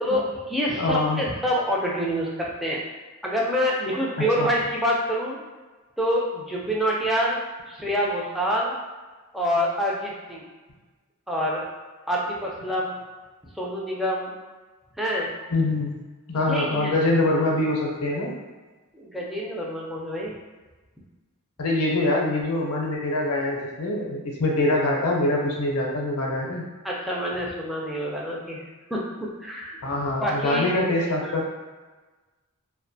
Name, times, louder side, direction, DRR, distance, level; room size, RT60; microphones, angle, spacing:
voice 1, 0.0-2.8 3.2-5.4 6.0-7.4 7.7-8.7 9.3-10.4 11.3-11.6 12.1-12.9 13.6-14.3 15.0-15.3 16.3-16.9 18.9-20.3 26.8-28.6 28.9-29.8 30.2-30.7 31.2-31.4, equal, ahead, -4 dB, 0.4 m, -26 dB
voice 2, 0.7-1.2 4.4-4.5 15.5-15.9 16.3-18.3 21.6-26.6 29.8-31.5, left 2 dB, 70° left, -1 dB, 0.5 m, -24 dB
2.3 x 2.1 x 2.6 m, 1.3 s
head